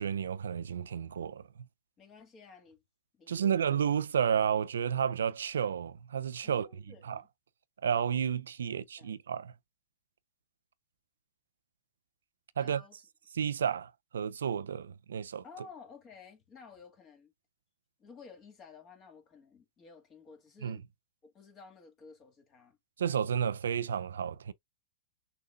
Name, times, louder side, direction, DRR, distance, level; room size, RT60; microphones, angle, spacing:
voice 1, 0.0-1.4 3.3-6.7 7.0-7.2 7.8-9.5 12.6-12.8 13.4-15.4 20.6-20.8 23.0-24.5, right 8 dB, 85° right, 0.5 m, -31 dB
voice 2, 2.0-2.8 3.1-3.6 6.4-7.3 8.6-9.1 12.6-13.0 15.4-17.3 18.0-20.8 21.2-22.8, left 5 dB, 30° left, 2.2 m, -54 dB
6.6 x 2.2 x 2.6 m
hypercardioid pair, 115°, 0 cm